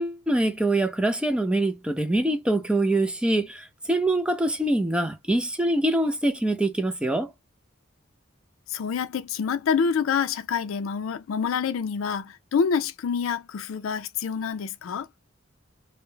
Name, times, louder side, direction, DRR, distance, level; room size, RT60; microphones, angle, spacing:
voice 1, 0.0-7.3, right 1 dB, 5° right, 0.3 m, -24 dB
voice 2, 8.7-15.1, left 6 dB, 80° left, 0.4 m, -27 dB
2.2 x 2.0 x 3.0 m
head